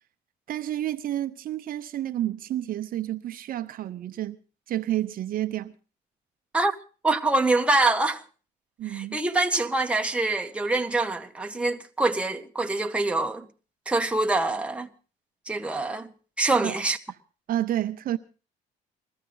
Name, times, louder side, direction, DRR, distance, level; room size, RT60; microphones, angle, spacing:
voice 1, 0.5-4.4 4.7-5.7 8.8-9.2 16.6-16.8 17.5-18.2, right 13 dB, 55° right, 0.8 m, -30 dB
voice 2, 7.0-8.2 8.9-13.5 13.9-14.9 15.5-16.1 16.4-17.0, right 2 dB, 5° right, 1.4 m, -25 dB
21.0 x 14.5 x 3.9 m
cardioid pair, 110°, 17 cm